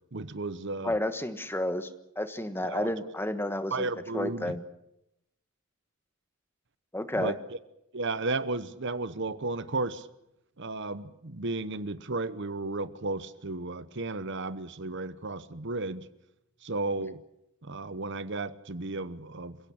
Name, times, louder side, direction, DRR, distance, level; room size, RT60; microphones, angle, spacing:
voice 1, 0.1-0.9 2.6-2.9 3.7-4.6 7.1-7.4 7.9-10.1 10.6-16.1 16.6-17.2 17.6-19.6, right 2 dB, 55° right, 14 dB, 1.0 m, -33 dB
voice 2, 0.8-1.9 2.1-4.6 6.9-7.3, left 1 dB, 10° left, 10 dB, 1.3 m, -31 dB
27.5 x 17.0 x 8.8 m, 0.85 s
head